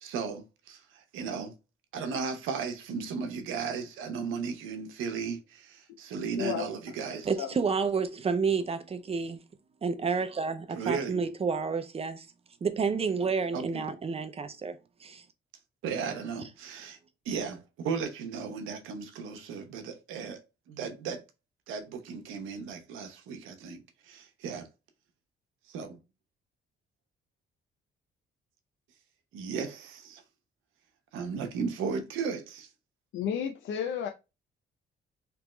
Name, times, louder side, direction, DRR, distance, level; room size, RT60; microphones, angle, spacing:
voice 1, 0.0-1.6 1.9-7.3 10.7-11.3 13.5-13.8 15.8-17.0 17.2-20.4 20.7-21.2 21.7-24.7 25.7-26.0 29.3-30.2 31.1-32.7, right 5 dB, 90° right, 0.7 m, -35 dB
voice 2, 7.2-9.4 9.8-12.3 12.6-15.2, right 5 dB, 30° right, 0.5 m, -30 dB
voice 3, 33.1-34.1, left 8 dB, 75° left, 0.5 m, -31 dB
3.4 x 3.0 x 3.1 m
cardioid pair, 90°, 20 cm